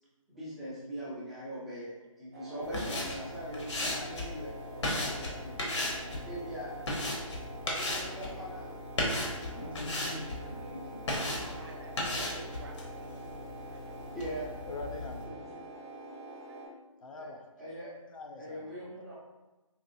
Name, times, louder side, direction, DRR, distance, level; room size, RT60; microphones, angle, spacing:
voice 1, 0.3-5.6 6.2-6.7 7.6-8.7 9.3-9.6 10.5-10.9 11.5-11.7 14.1-14.6 15.2-15.6 17.2-17.3 17.6-17.9 18.4-19.2, equal, ahead, -12 dB, 0.7 m, -42 dB
sound 1, 2.3-16.7, right 2 dB, 30° right, 1.0 m, -46 dB
sound 2, 2.6-15.3, left 1 dB, 55° left, 1.0 m, -36 dB
voice 2, 9.6-10.3 14.7-15.3 17.0-17.4 18.1-18.7, left 2 dB, 70° left, 4 dB, 0.6 m, -42 dB
voice 3, 11.1-13.4 13.7-14.2 16.5-16.6, right 3 dB, 45° right, 3 dB, 0.4 m, -51 dB
4.2 x 2.9 x 2.6 m, 1.1 s
figure-of-eight pair, 150°, 18 cm